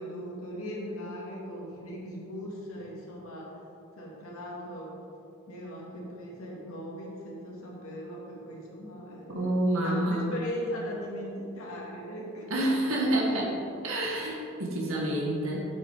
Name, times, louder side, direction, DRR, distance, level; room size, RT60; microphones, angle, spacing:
voice 1, 0.0-3.5 4.0-5.0 5.5-9.6 9.8-12.5, equal, 85° left, -3 dB, 2.3 m, -39 dB
voice 2, 9.3-10.2 12.5-13.6 13.8-15.7, right 1 dB, 80° right, -3 dB, 1.9 m, -28 dB
8.3 x 8.0 x 5.0 m, 2.8 s
head